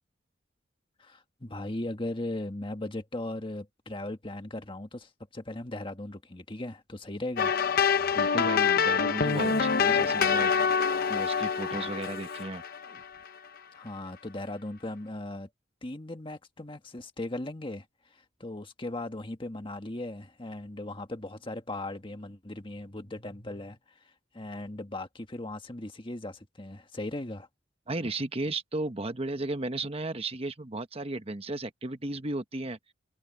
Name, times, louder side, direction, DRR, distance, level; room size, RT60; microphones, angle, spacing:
voice 1, 1.0-7.6 13.7-15.5 15.8-27.5, left 1 dB, 25° left, 1.7 m, -38 dB
sound 1, 7.4-13.3, left 6 dB, 50° left, 0.7 m, -26 dB
voice 2, 8.1-10.5 11.1-12.6 27.9-32.8, right 2 dB, 30° right, 1.1 m, -34 dB
head